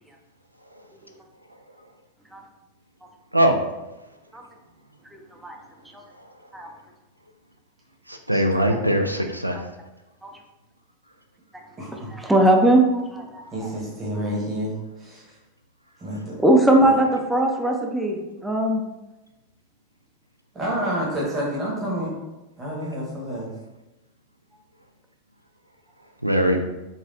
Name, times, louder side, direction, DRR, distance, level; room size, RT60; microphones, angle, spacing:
voice 1, 5.1-5.6 6.5-6.7 10.2-10.3 12.2-13.4 16.4-18.8, right 1 dB, 5° right, 0.5 m, -19 dB
voice 2, 8.1-9.6 26.2-26.6, equal, 90° right, 0.4 m, -21 dB
voice 3, 11.8-12.1 13.5-15.4 16.0-16.4 16.8-17.0 20.5-22.1 22.6-23.5, equal, 20° right, 1.0 m, -29 dB
4.0 x 2.5 x 2.6 m
figure-of-eight pair, 90°, 0 cm